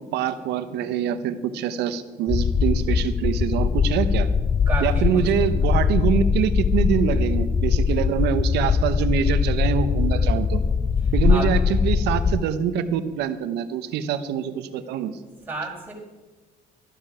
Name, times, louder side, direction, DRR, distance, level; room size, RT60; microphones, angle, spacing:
voice 1, 0.1-4.3 4.8-10.6 11.1-15.2, right 8 dB, 85° right, 12 dB, 0.9 m, -25 dB
sound 1, 2.3-12.4, left 6 dB, 25° left, 0.4 m, -21 dB
voice 2, 4.7-5.5 11.0-11.5 15.5-15.9, right 3 dB, 10° right, -5 dB, 5.1 m, -32 dB
13.0 x 11.5 x 5.0 m, 1.3 s
cardioid pair, 110°, 17 cm